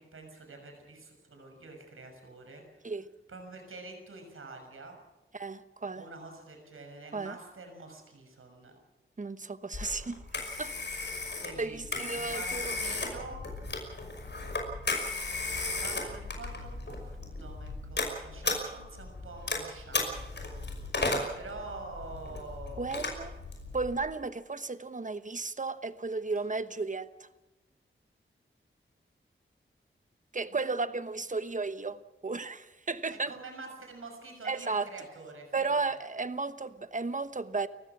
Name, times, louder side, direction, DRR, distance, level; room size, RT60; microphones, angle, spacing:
voice 1, 0.0-2.6 3.3-5.0 5.9-8.8 11.4-13.4 15.8-20.5 21.3-23.3 30.5-30.7 33.1-35.9, right 3 dB, 90° right, 4 dB, 6.4 m, -46 dB
voice 2, 5.3-6.1 7.1-7.3 9.2-10.2 10.6-11.1 11.6-12.8 22.8-23.3 23.7-27.3 30.3-33.3 34.4-34.9 35.5-37.7, right 4 dB, 40° right, 12 dB, 1.1 m, -34 dB
Telephone, 9.7-24.0, left 3 dB, 55° left, 5.7 m, -35 dB
30.0 x 15.5 x 6.1 m, 1.0 s
wide cardioid pair, 85°, 21 cm